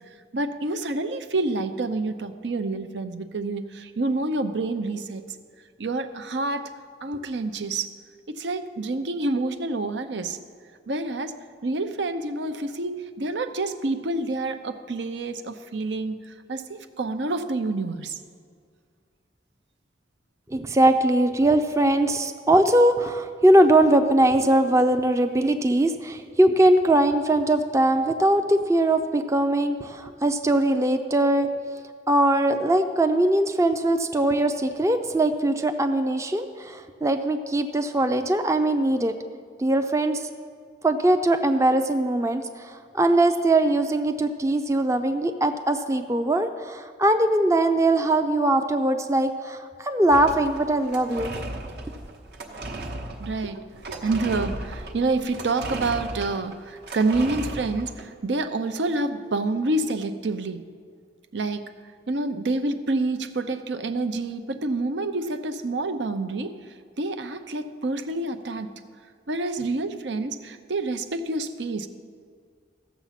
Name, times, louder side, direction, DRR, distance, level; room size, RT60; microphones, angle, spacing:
voice 1, 0.3-5.2 5.8-6.7 7.0-7.9 8.4-10.4 10.9-11.4 11.6-18.2 53.2-60.6 61.3-61.7 62.1-66.5 67.0-68.7 69.3-71.9, right 2 dB, 85° right, 9 dB, 0.7 m, -28 dB
voice 2, 20.5-31.5 32.1-39.2 39.6-40.2 40.8-51.3, right 1 dB, 15° right, 7 dB, 0.4 m, -21 dB
sound 1, 50.1-58.0, right 2 dB, 65° right, 1.0 m, -36 dB
15.0 x 7.2 x 5.8 m, 2.1 s
head